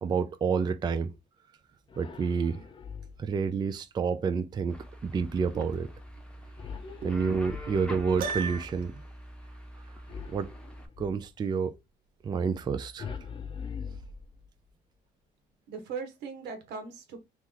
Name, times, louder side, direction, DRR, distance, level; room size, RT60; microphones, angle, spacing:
voice 1, 0.0-1.1 2.0-2.6 3.2-5.9 7.0-9.0 10.3-10.5 11.0-11.7 12.2-13.1, right 5 dB, 25° right, 0.4 m, -29 dB
sound 1, 1.9-3.4 6.6-8.1 10.1-11.3 13.0-14.7, left 6 dB, 30° left, 0.6 m, -42 dB
sound 2, 4.7-10.9, equal, 5° left, 0.8 m, -45 dB
Piano, 8.2-9.0, right 5 dB, 55° right, 0.8 m, -34 dB
voice 2, 15.7-17.2, right 5 dB, 85° right, 1.3 m, -39 dB
3.0 x 3.0 x 3.7 m
cardioid pair, 110°, 17 cm